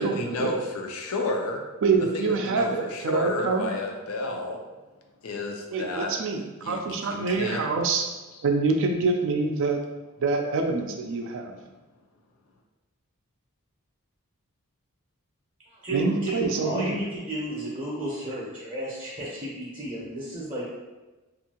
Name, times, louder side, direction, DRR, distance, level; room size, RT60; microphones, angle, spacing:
voice 1, 0.0-1.6 2.1-4.6 5.2-6.1 6.6-7.6, left 2 dB, 75° left, 2 dB, 0.5 m, -31 dB
voice 2, 1.8-3.7 5.7-8.1 8.4-9.8 10.2-11.6 15.9-17.0, right 4 dB, 60° right, 3 dB, 0.4 m, -26 dB
voice 3, 15.7-20.7, right 1 dB, 25° right, -7 dB, 0.6 m, -32 dB
2.6 x 2.5 x 2.8 m, 1.1 s
head